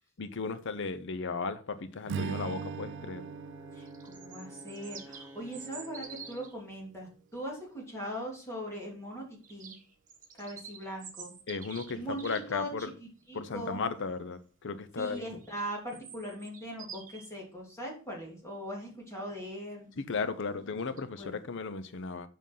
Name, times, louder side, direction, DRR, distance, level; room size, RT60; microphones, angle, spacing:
voice 1, 0.2-3.2 11.5-12.9 13.3-15.3 20.1-22.3, left 4 dB, 60° left, 0.6 m, -35 dB
Strum, 2.1-6.5, right 6 dB, 55° right, 0.3 m, -41 dB
Brass instrument, 2.4-6.6, equal, 10° right, 0.7 m, -51 dB
voice 2, 3.7-9.7 10.3-11.3 11.9-13.8 15.0-19.9 21.2-21.4, equal, 15° left, 3.0 m, -40 dB
sound 1, 3.7-6.6 9.4-12.5 15.4-17.3 20.8-21.0, right 6 dB, 40° right, 1.5 m, -48 dB
7.5 x 5.4 x 5.6 m
head